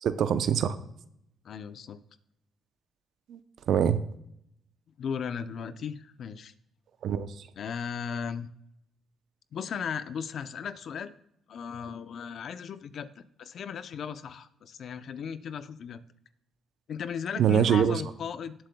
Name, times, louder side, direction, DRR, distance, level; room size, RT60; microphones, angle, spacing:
voice 1, 0.0-0.8 3.3-3.4 3.7-4.0 7.0-7.3 17.4-18.0, right 8 dB, 70° right, 0.6 m, -24 dB
voice 2, 1.4-2.0 5.0-6.5 7.6-8.5 9.5-11.1 11.5-16.0 16.9-18.5, left 7 dB, 60° left, 0.6 m, -36 dB
18.5 x 7.7 x 2.3 m
cardioid pair, 90°, 0 cm